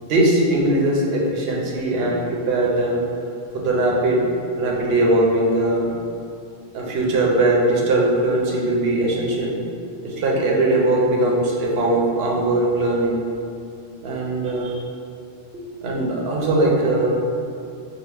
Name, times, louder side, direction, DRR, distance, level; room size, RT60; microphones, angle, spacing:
voice 1, 0.0-3.0 3.5-4.3 4.6-5.9 6.7-9.6 10.0-13.2 14.0-14.8 15.5-17.2, right 1 dB, 65° right, -3 dB, 0.9 m, -20 dB
5.8 x 2.1 x 3.4 m, 2.5 s
omnidirectional pair, 1.1 m